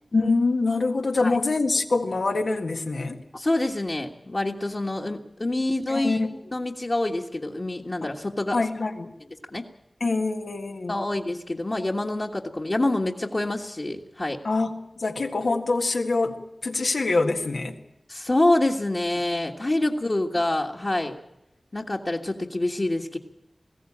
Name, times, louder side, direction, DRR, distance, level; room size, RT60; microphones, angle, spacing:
voice 1, 0.1-3.2 5.9-6.4 8.5-9.1 10.0-11.0 14.4-17.8, left 3 dB, 85° left, 4 dB, 1.8 m, -25 dB
voice 2, 3.3-8.6 9.5-9.6 10.9-14.4 18.1-21.2 21.7-23.2, left 1 dB, 45° left, -3 dB, 1.7 m, -26 dB
20.5 x 16.0 x 8.7 m, 0.87 s
wide cardioid pair, 60°, 0 cm